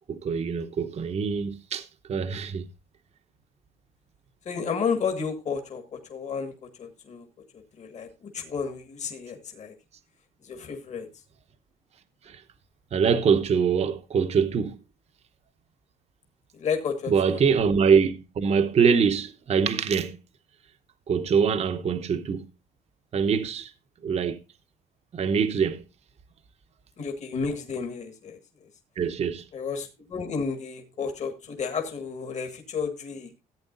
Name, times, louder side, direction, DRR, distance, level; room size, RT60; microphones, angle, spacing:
voice 1, 0.1-2.6 12.3-12.4 12.9-14.8 17.1-20.2 21.1-22.5 23.1-23.7 24.0-24.4 25.1-25.8 29.0-29.4, right 6 dB, 40° right, 0.8 m, -24 dB
voice 2, 4.4-7.3 7.8-9.7 10.4-11.1 16.5-17.4 27.0-28.4 29.5-33.3, left 5 dB, 45° left, 1.7 m, -32 dB
15.0 x 8.4 x 2.6 m
cardioid pair, 110°, 17 cm